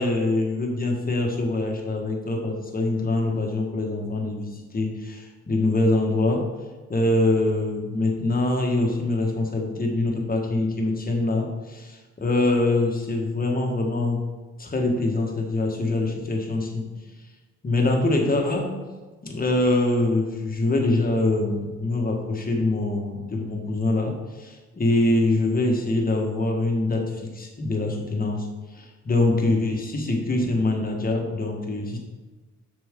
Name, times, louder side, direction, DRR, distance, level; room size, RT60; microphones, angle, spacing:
voice 1, 0.0-6.5 6.9-14.2 14.6-16.9 17.6-18.7 19.2-28.5 28.7-32.0, left 2 dB, 30° left, 0 dB, 1.7 m, -24 dB
7.1 x 6.0 x 3.8 m, 1.3 s
cardioid pair, 90°, 30 cm